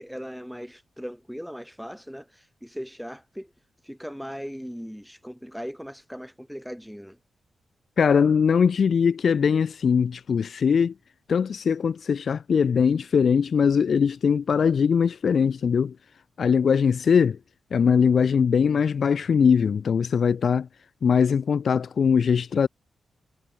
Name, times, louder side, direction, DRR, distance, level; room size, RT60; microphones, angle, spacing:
voice 1, 0.0-3.5 3.8-7.2, equal, ahead, 6.0 m, -38 dB
voice 2, 8.0-10.9 11.3-16.0 16.4-17.4 17.7-20.7 21.0-22.7, left 6 dB, 55° left, 0.5 m, -21 dB
wide cardioid pair, 140°, 0 cm